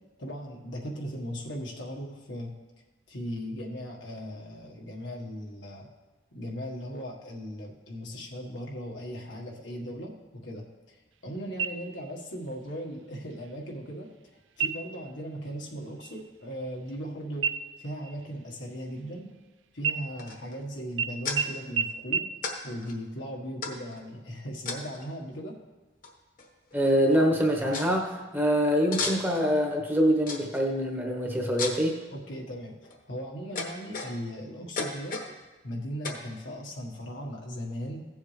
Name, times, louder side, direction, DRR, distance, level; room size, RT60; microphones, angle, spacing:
voice 1, 0.2-2.5 3.1-5.9 6.3-10.1 10.4-11.0 11.2-14.1 14.6-17.5 17.8-19.3 19.7-22.3 22.6-25.6 32.1-32.8 33.1-35.2 35.6-38.1, equal, 85° left, -1 dB, 1.5 m, -38 dB
sound 1, 11.6-12.3 12.7-12.8 13.3-13.8 14.5-15.1 15.4-15.7 16.0-17.1 17.4-19.4 19.8-20.6 21.0-21.1 21.4-21.5 21.8-21.9 22.1-22.2, right 6 dB, 90° right, 0.4 m, -32 dB
sound 2, 20.2-20.6 21.2-21.4 22.4-22.6 22.8-22.9 23.6-24.0 24.7-25.1 26.0-26.1 26.4-26.8 27.1-27.2 27.7-27.9 28.9-29.5 30.3-30.6 31.6-31.9 32.6-33.0 33.6-34.4 34.8-35.3 36.0-36.3, left 4 dB, 45° left, 1.1 m, -34 dB
voice 2, 26.7-32.0, equal, 10° right, 0 dB, 1.1 m, -25 dB
16.0 x 7.2 x 3.3 m, 1.2 s
head